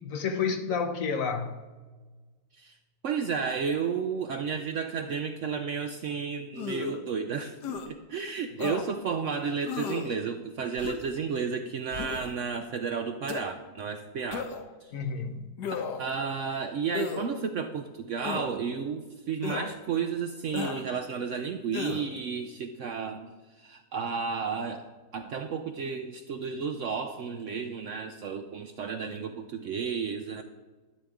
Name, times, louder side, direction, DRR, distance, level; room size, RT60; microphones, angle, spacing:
voice 1, 0.0-1.7 14.9-15.6, left 5 dB, 60° left, 7 dB, 1.1 m, -30 dB
voice 2, 3.0-14.5 14.8-14.9 16.0-23.3 23.6-24.9 25.1-30.4, right 6 dB, 65° right, 7 dB, 0.8 m, -32 dB
sound 1, 6.6-7.0 7.6-7.9 8.6-8.8 9.6-10.1 10.8-11.1 11.9-12.3 13.3-13.4 14.3-14.7 15.6-16.1 16.9-17.3 18.2-18.5 19.4-19.7 20.5-20.8 21.7-22.1, left 6 dB, 90° left, 1.5 m, -34 dB
11.0 x 11.0 x 3.6 m, 1.3 s
omnidirectional pair, 1.8 m